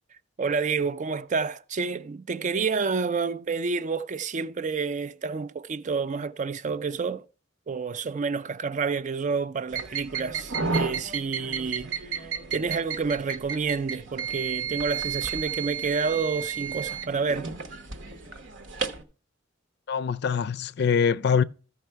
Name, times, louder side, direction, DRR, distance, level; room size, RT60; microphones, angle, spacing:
voice 1, 0.4-7.3 7.7-17.5, right 5 dB, 40° right, 0.4 m, -29 dB
sound 1, 9.7-19.0, right 6 dB, 65° right, 1.1 m, -32 dB
voice 2, 19.9-21.4, left 6 dB, 55° left, 0.4 m, -23 dB
14.0 x 5.6 x 4.6 m
head